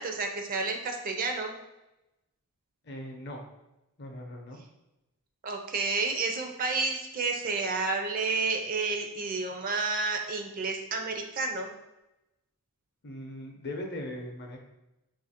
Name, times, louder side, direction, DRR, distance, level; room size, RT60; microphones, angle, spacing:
voice 1, 0.0-1.6 5.4-11.7, right 3 dB, 40° right, 3 dB, 0.4 m, -30 dB
voice 2, 2.8-3.4 4.0-4.6 13.0-14.6, left 1 dB, 50° left, 2 dB, 0.6 m, -39 dB
2.7 x 2.5 x 4.2 m, 0.93 s
head